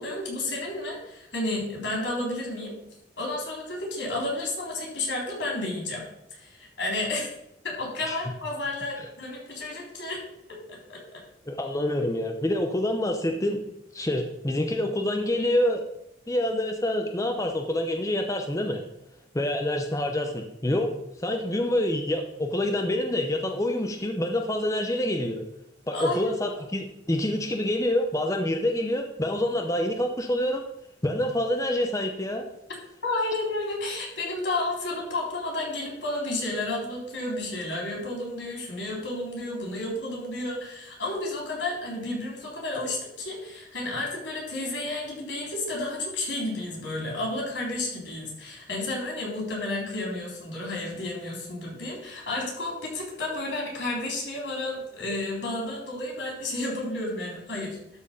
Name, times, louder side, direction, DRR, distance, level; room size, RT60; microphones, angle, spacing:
voice 1, 0.0-2.7 3.2-6.0 6.3-7.3 7.6-10.2 10.7-11.2 25.9-26.5 33.0-57.8, left 2 dB, 85° left, -1 dB, 4.1 m, -31 dB
voice 2, 11.5-13.6 13.9-15.8 16.3-18.8 19.3-20.9 21.2-25.4 25.9-30.6 31.0-32.4, left 1 dB, 15° left, 3 dB, 0.7 m, -27 dB
12.5 x 4.6 x 5.4 m, 0.83 s
head